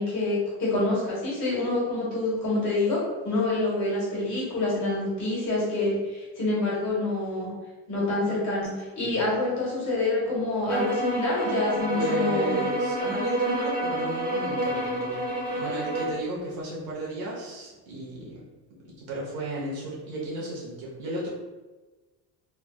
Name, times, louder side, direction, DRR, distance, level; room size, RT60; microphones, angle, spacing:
voice 1, 0.0-7.5 7.9-12.6, left 2 dB, 45° left, -7 dB, 1.4 m, -27 dB
sound 1, 10.7-16.2, right 1 dB, 20° right, 0.7 m, -28 dB
voice 2, 11.7-15.2 15.5-18.4 18.8-21.3, right 1 dB, 65° right, -5 dB, 1.2 m, -33 dB
3.3 x 2.5 x 2.4 m, 1.2 s
cardioid pair, 165°, 40 cm